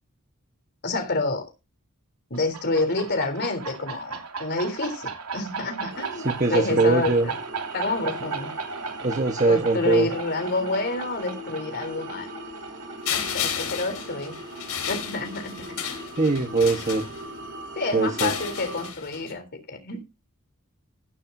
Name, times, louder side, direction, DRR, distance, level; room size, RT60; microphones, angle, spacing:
voice 1, 0.8-1.5 2.3-7.3 7.7-8.5 9.5-12.3 13.1-14.4 14.9-15.6 17.8-20.0, left 3 dB, 50° left, 6 dB, 3.5 m, -28 dB
sound 1, 2.3-15.7, right 5 dB, 90° right, 2.8 m, -36 dB
sound 2, 5.9-18.9, right 1 dB, 60° right, 3.4 m, -40 dB
voice 2, 6.2-7.3 9.0-10.1 16.2-17.1 17.9-18.3, right 3 dB, 35° right, 6 dB, 1.3 m, -22 dB
sound 3, 13.0-17.5 18.0-19.3, left 8 dB, 85° left, 3.9 m, -33 dB
15.0 x 11.5 x 2.7 m, 0.26 s
head